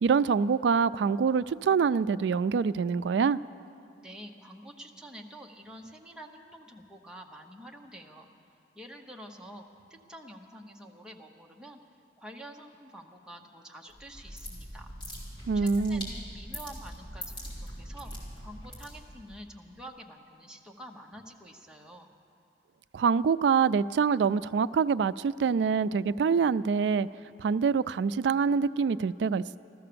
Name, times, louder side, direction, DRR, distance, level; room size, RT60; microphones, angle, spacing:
voice 1, 0.0-3.4 15.5-16.1 22.9-27.1 27.4-29.6, right 5 dB, 75° right, 16 dB, 0.3 m, -25 dB
voice 2, 4.0-8.3 8.7-11.8 12.2-14.9 15.5-18.1 18.4-22.1, right 1 dB, 5° right, 0 dB, 0.9 m, -48 dB
sound 1, 13.9-19.3, equal, 30° left, 3.4 m, -42 dB
15.0 x 14.0 x 6.9 m, 2.5 s
head